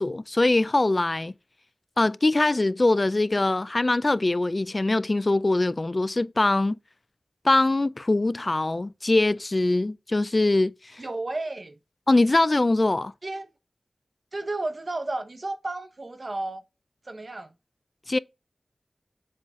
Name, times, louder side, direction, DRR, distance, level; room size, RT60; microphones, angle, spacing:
voice 1, 0.0-1.3 2.0-6.8 7.4-11.0 12.1-13.1 18.1-18.2, left 2 dB, 45° left, 0.3 m, -22 dB
voice 2, 11.0-11.7 13.2-13.5 14.3-16.6 17.1-17.5, right 2 dB, 55° right, 1.0 m, -32 dB
7.6 x 4.0 x 3.7 m
wide cardioid pair, 50°, 0 cm